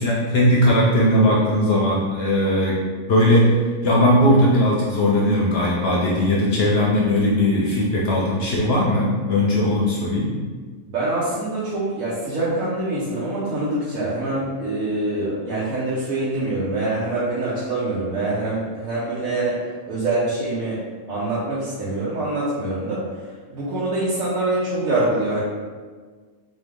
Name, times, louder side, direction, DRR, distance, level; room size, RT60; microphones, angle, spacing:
voice 1, 0.0-2.8 3.1-10.3, left 1 dB, 60° left, -4 dB, 0.7 m, -18 dB
voice 2, 10.9-19.6 19.9-20.8 21.1-23.0 23.5-25.4, right 2 dB, 75° right, -8 dB, 1.2 m, -24 dB
3.9 x 2.7 x 3.5 m, 1.5 s
omnidirectional pair, 1.4 m